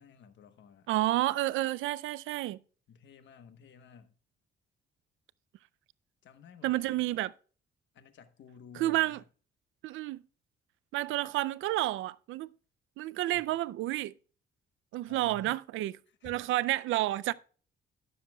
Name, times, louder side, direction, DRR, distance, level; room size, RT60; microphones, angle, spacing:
voice 1, 0.0-0.9 2.9-4.1 6.2-7.1 7.9-9.2 13.3-13.5 15.1-15.6 16.2-16.3, left 6 dB, 65° left, 1.2 m, -54 dB
voice 2, 0.9-2.6 6.6-7.3 8.7-9.2 9.8-10.2 10.9-12.5 13.0-14.1 14.9-15.9 16.2-17.3, right 16 dB, 85° right, 0.5 m, -30 dB
18.5 x 6.9 x 2.3 m
cardioid pair, 90°, 20 cm